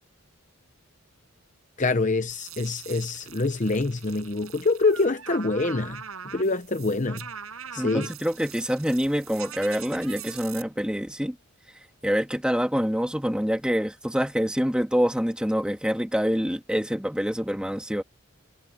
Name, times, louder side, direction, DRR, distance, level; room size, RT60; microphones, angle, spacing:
voice 1, 1.8-7.3 7.7-8.1, left 3 dB, 35° left, 0.8 m, -25 dB
sound 1, 2.3-10.6, right 8 dB, 85° right, 5.2 m, -42 dB
voice 2, 7.8-11.4 12.0-18.0, equal, 5° right, 1.6 m, -26 dB
head